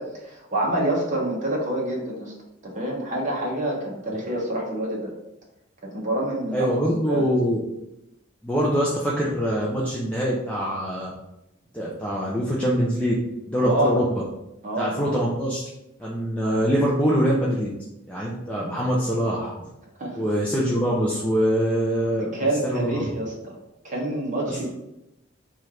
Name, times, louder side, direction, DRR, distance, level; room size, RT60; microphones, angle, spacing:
voice 1, 0.0-2.3 2.6-5.1 5.8-6.7 7.1-7.2 13.6-14.0 14.6-15.2 20.0-20.2 22.2-23.6 23.8-24.7, right 1 dB, 40° right, -2 dB, 0.9 m, -27 dB
voice 2, 6.5-7.6 8.4-11.1 11.7-13.1 13.5-14.2 14.8-15.6 16.0-17.7 18.1-19.5 20.1-22.3 22.6-23.1 24.5-24.6, equal, 5° left, -5 dB, 0.4 m, -24 dB
3.1 x 2.4 x 4.3 m, 0.90 s
head